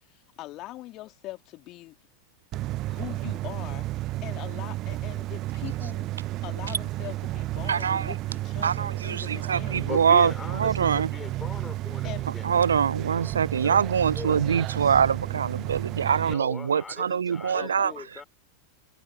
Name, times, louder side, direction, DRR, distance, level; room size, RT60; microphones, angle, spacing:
voice 1, 0.0-1.9 2.6-3.9 4.2-6.1 6.4-10.0 12.0-12.3 17.5-18.0, left 17 dB, 35° left, 3.3 m, -42 dB
sound 1, 2.5-16.3, right 16 dB, 35° right, 1.2 m, -32 dB
voice 2, 7.7-8.1 8.6-11.1 12.4-17.9, right 7 dB, 70° right, 0.4 m, -24 dB
voice 3, 9.9-12.6 13.6-13.8 14.1-14.6 16.2-18.2, left 5 dB, 15° left, 5.3 m, -40 dB
figure-of-eight pair, 90°, 0 cm